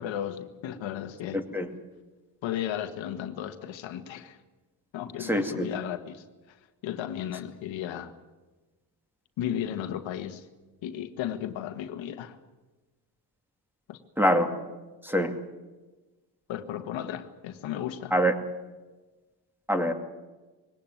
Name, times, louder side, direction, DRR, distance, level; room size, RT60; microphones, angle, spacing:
voice 1, 0.0-1.4 2.4-4.4 4.9-6.6 6.8-8.1 9.4-10.4 10.8-12.4 13.9-14.0 16.5-18.1, left 10 dB, 80° left, 8 dB, 1.6 m, -34 dB
voice 2, 1.3-1.7 5.2-5.7 14.2-14.5 15.0-15.3 18.1-18.3 19.7-19.9, equal, 5° right, 6 dB, 2.4 m, -24 dB
21.0 x 17.5 x 9.3 m, 1.2 s
cardioid pair, 90°, 45 cm